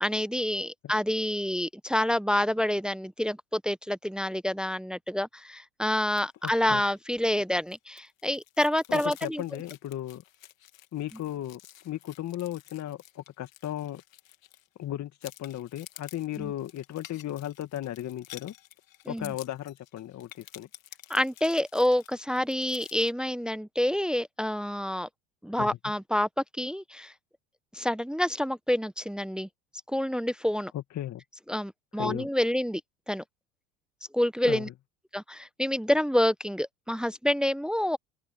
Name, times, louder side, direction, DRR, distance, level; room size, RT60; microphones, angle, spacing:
voice 1, 0.0-9.4 16.4-16.5 19.1-19.3 21.1-25.1 25.4-26.3 26.6-27.1 27.7-29.5 29.9-30.7 31.5-32.8 33.1-33.2 34.1-34.7 35.1-38.0, left 1 dB, ahead, 0.8 m, -28 dB
sound 1, 6.1-6.5 6.8-7.0 7.4-14.8 15.2-23.1, left 14 dB, 85° left, 2.4 m, -51 dB
voice 2, 6.4-6.8 8.9-10.2 10.9-11.6 11.8-14.0 14.8-18.5 19.1-20.7 25.6-25.7 30.7-31.2 32.0-32.3 34.4-34.7, left 12 dB, 45° left, 2.2 m, -35 dB
open air
hypercardioid pair, 80°, 39 cm